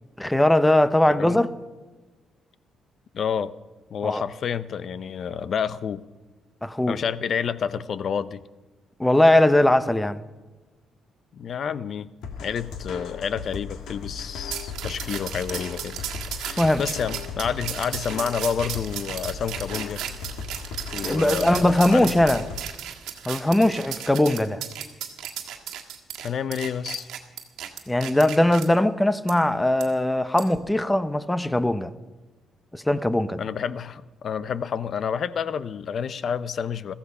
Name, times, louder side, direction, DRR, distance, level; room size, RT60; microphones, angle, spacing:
voice 1, 0.2-1.5 4.0-4.2 6.6-7.0 9.0-10.2 16.6-16.8 21.0-22.4 23.3-24.6 27.9-31.9 32.7-33.4, left 1 dB, 10° left, 0.8 m, -20 dB
voice 2, 1.1-1.4 3.1-3.5 3.9-6.0 6.9-8.4 11.3-12.1 12.4-16.0 16.4-20.0 20.9-22.1 26.2-27.1 33.4-36.9, left 7 dB, 55° left, 0.6 m, -29 dB
sound 1, 12.2-22.6, left 5 dB, 85° left, 1.7 m, -37 dB
sound 2, 14.5-28.7 29.3-29.4 29.8-29.9 30.4-30.6, right 10 dB, 85° right, 1.6 m, -35 dB
15.0 x 14.5 x 5.5 m
cardioid pair, 90°, 0 cm